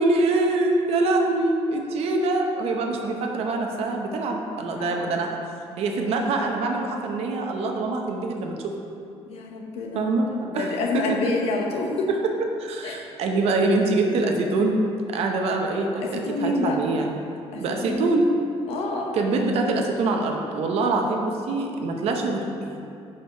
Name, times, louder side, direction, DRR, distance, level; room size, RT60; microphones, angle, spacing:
voice 1, 0.0-5.4 5.8-8.7 9.9-10.3 10.5-11.1 12.1-12.2 12.6-14.8 15.1-17.2 17.6-18.3 19.1-22.9, right 2 dB, 75° right, 2 dB, 0.8 m, -24 dB
voice 2, 4.7-5.1 9.3-10.1 10.5-12.1 12.8-13.0 16.0-16.8 17.5-18.1 18.7-19.3, left 3 dB, 75° left, 0 dB, 0.9 m, -28 dB
4.9 x 4.7 x 5.3 m, 2.5 s
cardioid pair, 135°, 11 cm